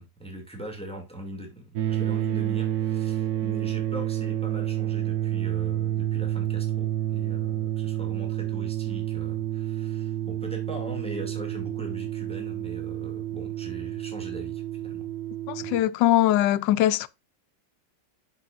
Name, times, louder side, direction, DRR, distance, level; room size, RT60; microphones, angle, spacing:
voice 1, 0.0-15.1 15.6-15.9, right 1 dB, 5° left, 2.0 m, -41 dB
sound 1, 1.8-15.8, right 12 dB, 75° right, 1.4 m, -29 dB
voice 2, 15.5-17.1, left 13 dB, 90° left, 1.3 m, -21 dB
8.2 x 6.8 x 2.4 m
omnidirectional pair, 1.9 m